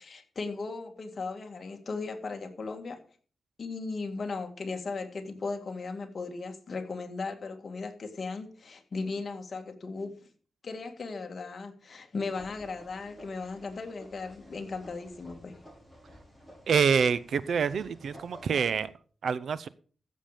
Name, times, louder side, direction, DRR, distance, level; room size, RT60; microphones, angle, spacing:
voice 1, 0.0-3.0 3.6-10.1 10.6-15.6, left 4 dB, 45° left, 5 dB, 2.0 m, -37 dB
sound 1, 12.3-18.9, equal, 10° right, 6.1 m, -52 dB
voice 2, 16.7-18.9 19.2-19.7, right 6 dB, 70° right, 17 dB, 0.7 m, -26 dB
14.5 x 7.3 x 5.0 m, 0.41 s
wide cardioid pair, 130°, 0 cm